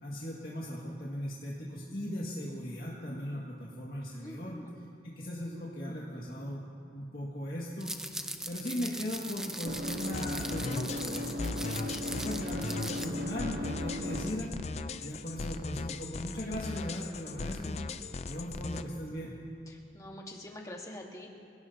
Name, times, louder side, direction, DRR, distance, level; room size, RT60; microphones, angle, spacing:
voice 1, 0.0-4.6 5.0-6.6 6.9-7.9 8.5-14.6 15.0-17.8 18.3-19.4, equal, 55° left, -5 dB, 2.0 m, -38 dB
voice 2, 4.2-4.8 19.7-21.3, left 1 dB, 20° left, 0 dB, 1.6 m, -45 dB
sound 1, 7.8-13.0, right 1 dB, 5° right, 0.6 m, -40 dB
sound 2, 8.6-14.6, left 1 dB, 55° right, 1.1 m, -38 dB
sound 3, 10.0-18.8, left 3 dB, 40° left, 0.5 m, -38 dB
26.5 x 17.5 x 2.9 m, 2.7 s
head